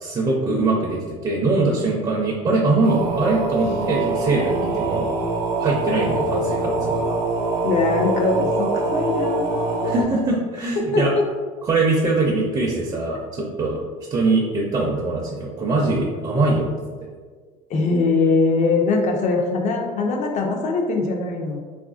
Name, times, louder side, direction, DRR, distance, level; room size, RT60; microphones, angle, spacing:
voice 1, 0.0-5.1 5.6-7.0 9.8-11.1 11.6-13.8 14.1-16.7, right 3 dB, 30° right, -2 dB, 0.5 m, -22 dB
sound 1, 2.8-10.0, right 2 dB, 70° right, 0.8 m, -24 dB
voice 2, 7.6-9.9 10.8-11.2 17.7-21.6, left 3 dB, 45° left, 2 dB, 0.6 m, -22 dB
3.5 x 2.4 x 2.4 m, 1.5 s
supercardioid pair, 100°, 17 cm